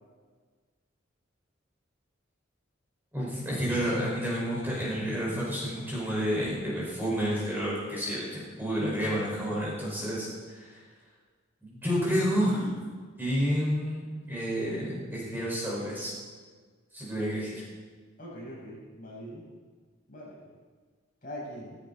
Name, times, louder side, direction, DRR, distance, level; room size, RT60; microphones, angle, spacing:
voice 1, 3.1-10.8 11.6-12.8 13.2-14.0 14.3-16.1 16.9-17.6, equal, 10° right, -6 dB, 5.3 m, -30 dB
voice 2, 18.2-19.4 20.1-20.4 21.2-21.8, equal, 45° left, -5 dB, 5.7 m, -42 dB
16.0 x 16.0 x 4.3 m, 1.5 s
head